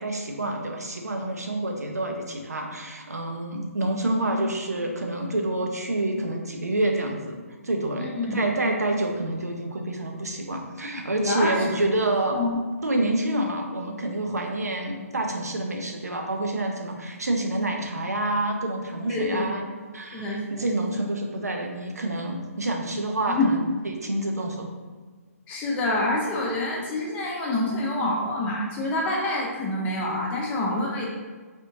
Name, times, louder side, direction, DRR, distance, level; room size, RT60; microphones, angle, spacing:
voice 1, 0.0-7.3 7.6-12.4 12.8-19.6 19.9-23.6 23.8-24.7, right 1 dB, 85° right, 3 dB, 0.6 m, -28 dB
voice 2, 8.0-8.4 11.2-11.6 12.3-12.6 19.1-19.4 20.1-20.9 23.3-23.5 25.5-31.0, left 2 dB, 15° left, -3 dB, 0.6 m, -27 dB
3.5 x 2.8 x 2.7 m, 1.4 s
figure-of-eight pair, 140°, 8 cm